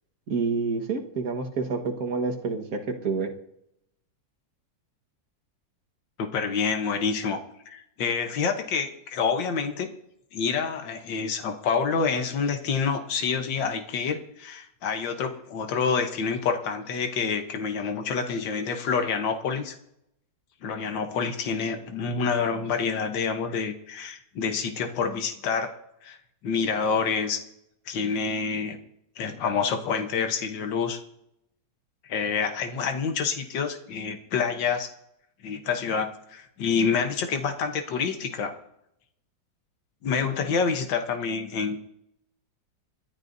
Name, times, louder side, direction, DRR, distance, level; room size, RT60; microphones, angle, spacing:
voice 1, 0.3-3.3, right 4 dB, 55° right, 1 dB, 1.9 m, -28 dB
voice 2, 6.2-7.4 7.7-9.9 10.3-19.8 20.6-25.7 26.0-26.2 26.4-27.4 27.9-28.8 29.2-31.0 32.0-34.9 35.4-38.5 40.0-41.8, left 5 dB, 80° left, 6 dB, 1.8 m, -27 dB
29.0 x 11.5 x 2.7 m, 0.79 s
omnidirectional pair, 2.0 m